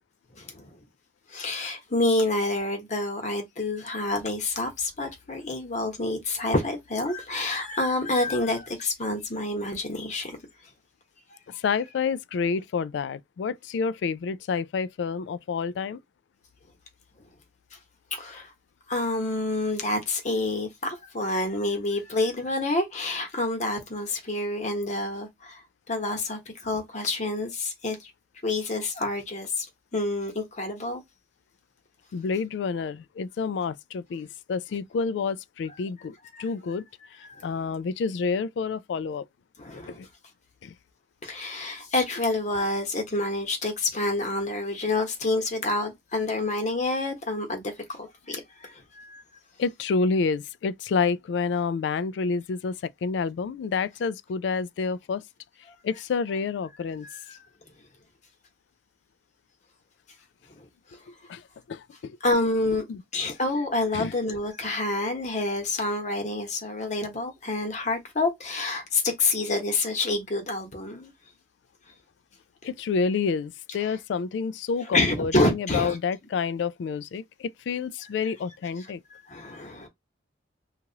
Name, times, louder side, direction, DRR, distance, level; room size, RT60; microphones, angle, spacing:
voice 1, 0.3-0.7 1.3-10.4 17.7-17.8 18.1-18.5 18.9-28.1 28.4-29.7 29.9-31.0 36.3-36.4 37.3-37.5 39.6-40.0 41.2-49.2 57.0-57.2 60.5-60.6 62.2-62.8 63.1-71.1 73.8-73.9 74.9-76.0 79.2-79.9, left 2 dB, 40° left, 1.1 m, -28 dB
voice 2, 11.5-16.0 32.1-36.8 37.2-39.2 39.7-40.1 40.6-40.7 49.6-55.2 55.8-57.1 61.3-62.2 62.9-63.3 63.9-64.1 72.6-79.0, left 5 dB, 70° left, 0.3 m, -29 dB
3.0 x 2.4 x 2.8 m
head